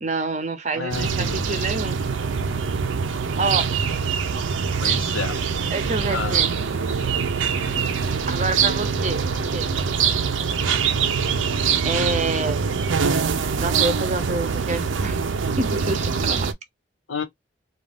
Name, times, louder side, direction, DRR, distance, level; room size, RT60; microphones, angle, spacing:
voice 1, 0.0-2.0 3.4-4.1 5.7-6.5 8.3-9.7 11.8-12.6 13.3-15.3 15.6-16.5, right 3 dB, 35° right, 0.6 m, -28 dB
voice 2, 0.7-1.8 4.8-5.4 6.1-6.4 17.1-17.2, left 4 dB, 90° left, 1.0 m, -30 dB
sound 1, 0.9-16.5, right 6 dB, 80° right, 0.5 m, -24 dB
2.4 x 2.4 x 3.3 m
head